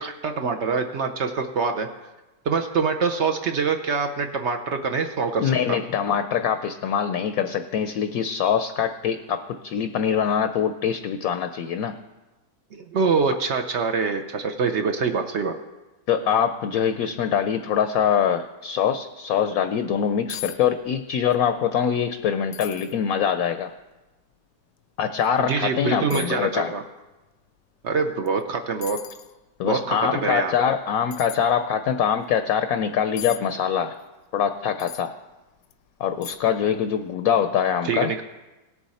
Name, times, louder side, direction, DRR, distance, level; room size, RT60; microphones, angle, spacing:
voice 1, 0.0-1.9 2.5-5.8 12.7-15.5 25.4-26.8 27.8-29.0 29.6-30.5 37.8-38.2, right 5 dB, 65° right, 5 dB, 0.7 m, -25 dB
voice 2, 5.4-12.0 16.1-23.7 25.0-26.7 29.6-34.0 34.3-35.1 36.0-38.1, left 8 dB, 70° left, 8 dB, 0.9 m, -24 dB
sound 1, 19.9-20.0 20.3-20.6 20.9-21.4 21.8-21.9 22.5-23.0 23.6-23.7 25.2-25.3 26.1-26.4 28.3-28.4 28.8-29.3 31.1-31.4 33.2-33.4 34.8-35.1 35.6-35.7 36.2-36.6 36.9-37.0, left 12 dB, 90° left, 1.3 m, -37 dB
18.0 x 7.1 x 4.2 m, 1.1 s
omnidirectional pair, 1.8 m